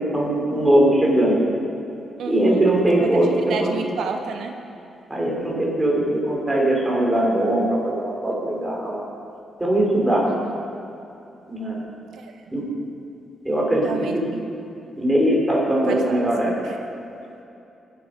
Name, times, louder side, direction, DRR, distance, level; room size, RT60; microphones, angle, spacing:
voice 1, 0.0-1.4 2.3-3.7 5.1-9.0 9.6-10.3 11.5-11.8 12.5-12.6 13.4-14.3 15.0-16.5, right 1 dB, 10° right, -3 dB, 4.1 m, -20 dB
voice 2, 2.2-2.6 3.5-4.6 10.3-10.5 12.1-12.4 13.8-14.5 15.8-16.8, right 5 dB, 80° right, 4 dB, 1.4 m, -31 dB
23.0 x 8.5 x 5.3 m, 2.7 s
cardioid pair, 135°, 0 cm